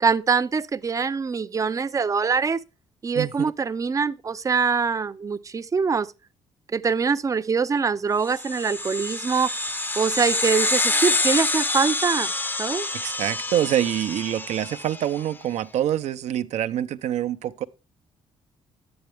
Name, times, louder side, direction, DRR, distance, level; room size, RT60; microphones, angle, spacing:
voice 1, 0.0-2.6 3.0-6.1 6.7-9.5 10.0-12.3 12.6-12.9, right 5 dB, 25° right, 0.5 m, -24 dB
voice 2, 3.1-3.5 12.9-17.6, right 11 dB, 70° right, 0.6 m, -26 dB
sound 1, 8.3-15.1, left 2 dB, 15° left, 0.6 m, -26 dB
10.5 x 8.8 x 3.4 m
cardioid pair, 105°, 12 cm